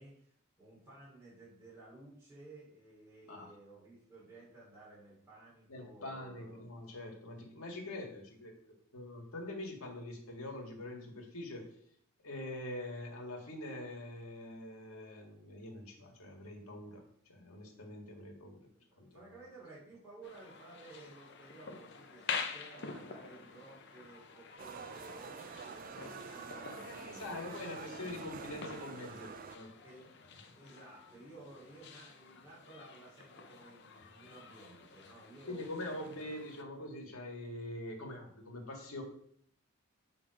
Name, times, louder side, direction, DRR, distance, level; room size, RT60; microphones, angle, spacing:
voice 1, 0.0-6.6 7.8-8.3 18.7-27.6 29.8-30.0 30.4-36.3, right 2 dB, 10° right, -8 dB, 3.1 m, -55 dB
voice 2, 5.7-8.5 8.9-11.7 12.2-17.0 17.3-18.6 19.0-19.4 26.8-29.7 35.5-39.0, left 1 dB, 75° left, 1 dB, 1.9 m, -44 dB
sound 1, 20.2-36.6, left 5 dB, 50° left, 0.6 m, -47 dB
sound 2, 24.6-29.6, right 5 dB, 40° right, 0.4 m, -47 dB
7.8 x 3.9 x 4.7 m, 0.64 s
head